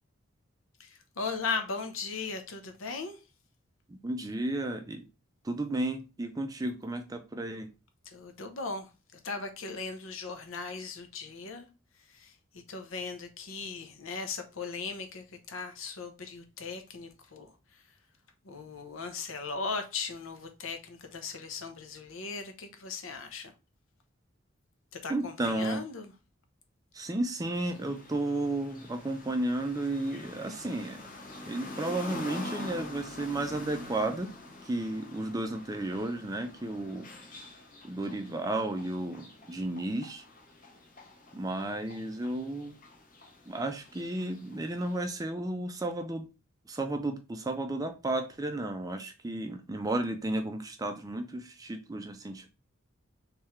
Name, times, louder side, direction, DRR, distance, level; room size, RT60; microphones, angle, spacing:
voice 1, 0.8-3.2 8.0-11.7 12.1-12.3 12.7-17.5 18.4-23.5 24.9-26.1, left 4 dB, 75° left, 0.7 m, -38 dB
voice 2, 3.9-5.0 5.4-7.7 25.1-25.8 26.9-31.1 31.4-34.3 34.6-37.1 37.8-40.2 41.3-42.8 43.5-46.3 46.7-52.5, right 2 dB, 15° right, 0.4 m, -33 dB
sound 1, 27.4-45.1, left 2 dB, 40° left, 0.7 m, -46 dB
3.5 x 3.3 x 3.1 m
head